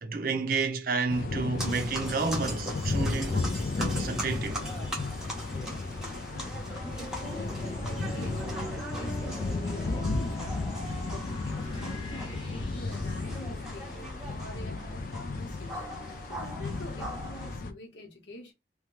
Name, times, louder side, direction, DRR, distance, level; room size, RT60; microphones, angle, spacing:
voice 1, 0.0-3.5 3.8-4.6, right 4 dB, 50° right, 0.5 m, -30 dB
sound 1, 1.1-17.7, left 3 dB, 45° left, 0.4 m, -34 dB
sound 2, 1.6-17.6, right 1 dB, 5° right, 0.7 m, -41 dB
voice 2, 6.3-10.7 11.1-14.0 14.3-15.9 16.3-18.5, left 1 dB, 75° left, 1.1 m, -46 dB
sound 3, 6.7-13.4, equal, 25° left, 0.8 m, -44 dB
2.7 x 2.3 x 3.1 m
head